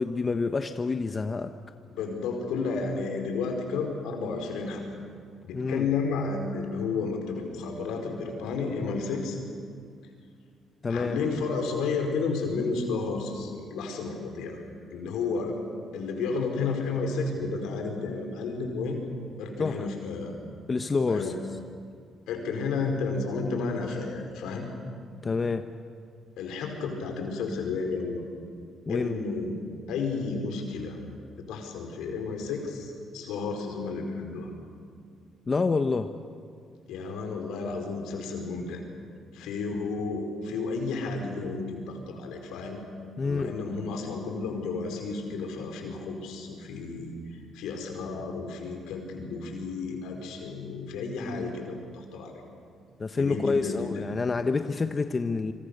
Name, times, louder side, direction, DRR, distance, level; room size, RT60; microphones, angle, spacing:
voice 1, 0.0-1.5 5.5-5.9 10.8-11.2 19.6-19.9 20.7-21.3 25.2-25.7 28.9-29.1 35.5-36.1 43.2-43.5 53.0-55.5, left 4 dB, 35° left, 8 dB, 1.1 m, -27 dB
voice 2, 1.9-4.8 5.4-9.4 10.9-14.6 14.9-15.5 15.9-19.0 19.4-20.4 21.1-21.4 22.3-24.7 26.4-28.2 28.9-29.6 29.9-31.0 31.3-34.5 36.9-38.8 39.3-42.8 43.2-52.4 53.1-54.0, left 4 dB, 80° left, 3 dB, 4.6 m, -32 dB
26.0 x 25.0 x 6.7 m, 2.2 s
supercardioid pair, 65°, 0 cm